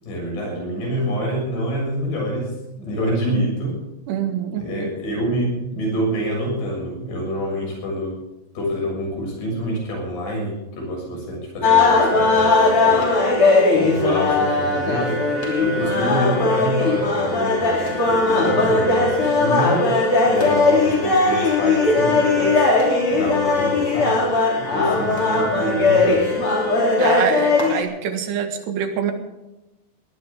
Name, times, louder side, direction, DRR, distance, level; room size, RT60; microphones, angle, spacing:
voice 1, 0.0-3.8 4.6-8.2 8.6-13.2 13.7-15.3 15.6-22.7 23.1-24.3 24.7-26.3, equal, 70° left, -1 dB, 9.0 m, -26 dB
voice 2, 4.1-4.9 27.0-29.1, right 8 dB, 80° right, 6 dB, 3.8 m, -25 dB
sound 1, 11.6-27.8, left 3 dB, 35° left, 3.7 m, -18 dB
21.0 x 18.0 x 3.7 m, 0.97 s
omnidirectional pair, 4.8 m